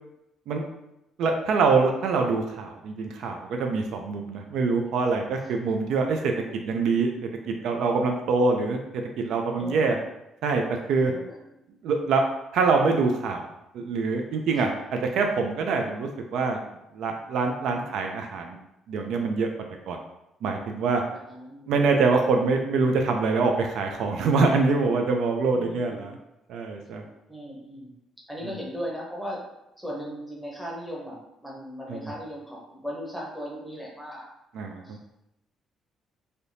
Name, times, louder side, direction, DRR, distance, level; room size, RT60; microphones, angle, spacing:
voice 1, 1.2-10.0 10.4-11.1 11.8-12.2 12.5-13.5 13.7-16.6 16.9-18.6 18.9-19.5 19.9-20.0 20.4-21.0 21.7-26.1 26.5-27.0 28.4-28.5 31.9-32.1 34.5-34.8, right 4 dB, 65° right, 3 dB, 0.3 m, -25 dB
voice 2, 9.6-9.9 11.1-11.4 14.5-14.7 21.1-21.7 25.5-26.1 27.3-27.9 28.3-29.4 29.8-34.2 34.8-35.1, equal, ahead, -5 dB, 0.8 m, -37 dB
3.3 x 2.7 x 2.6 m, 0.88 s
cardioid pair, 165°, 0 cm